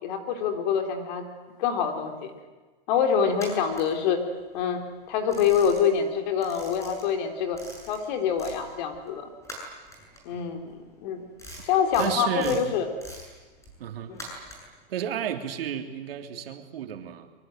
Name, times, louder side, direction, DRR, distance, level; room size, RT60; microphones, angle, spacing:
voice 1, 0.0-1.3 1.6-2.3 2.9-4.2 4.5-4.8 5.1-7.6 7.9-9.3 10.3-10.7 11.0-11.2 11.6-12.9 14.1-14.2, left 7 dB, 50° left, 5 dB, 4.0 m, -25 dB
sound 1, 3.3-4.6 4.9-6.1 6.4-8.6 8.9-14.8, equal, 10° left, 7.8 m, -44 dB
voice 2, 12.0-12.7 13.8-14.1 14.6-17.3, right 9 dB, 75° right, 5 dB, 3.3 m, -32 dB
24.0 x 24.0 x 9.2 m, 1.3 s
supercardioid pair, 155°, 29 cm